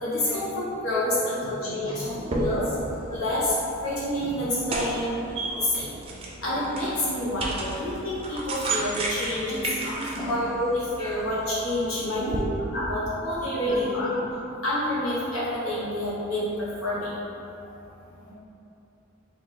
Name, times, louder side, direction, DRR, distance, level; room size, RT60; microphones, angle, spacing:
voice 1, 0.0-2.1 2.3-2.6 3.1-3.5 3.8-5.2 5.6-6.0 6.4-10.0 10.3-12.2 12.7-14.1 14.6-16.5 16.8-17.1, left 1 dB, 85° left, -8 dB, 1.2 m, -28 dB
voice 2, 1.6-2.3 2.6-2.8 3.1-3.2 4.2-4.4 5.0-5.6 9.5-10.4 11.0-11.1 12.0-12.5 12.8-13.0 13.5-14.2 17.6-17.8 18.1-18.3, left 1 dB, 25° left, -6 dB, 0.6 m, -36 dB
sound 1, 2.1-12.4, right 2 dB, 30° right, 0.5 m, -34 dB
3.7 x 2.5 x 4.0 m, 2.9 s
head